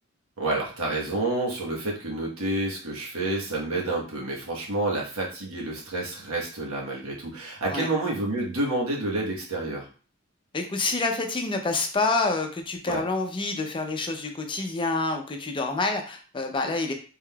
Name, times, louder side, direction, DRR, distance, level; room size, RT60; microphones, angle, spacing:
voice 1, 0.4-9.9 12.9-13.0, right 2 dB, 90° right, -2 dB, 1.2 m, -29 dB
voice 2, 10.5-16.9, left 3 dB, 25° left, 4 dB, 0.5 m, -27 dB
3.6 x 3.6 x 2.3 m, 0.39 s
head